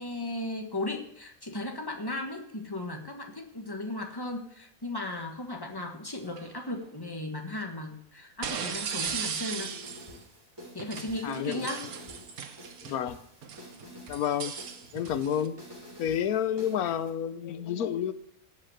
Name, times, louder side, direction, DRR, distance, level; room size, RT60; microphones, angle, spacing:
voice 1, 0.0-9.7 10.7-11.9, left 1 dB, 15° left, 3 dB, 1.5 m, -36 dB
sound 1, 6.3-6.5 8.4-10.2 10.8-13.0 13.4-15.5, right 7 dB, 90° right, 1.4 m, -37 dB
sound 2, 9.1-17.1, equal, 15° right, 3.5 m, -50 dB
voice 2, 11.2-11.7 12.8-13.2 14.1-14.5 14.9-15.6 16.0-18.1, left 9 dB, 90° left, 13 dB, 1.2 m, -30 dB
16.5 x 5.6 x 7.8 m, 0.76 s
omnidirectional pair, 1.5 m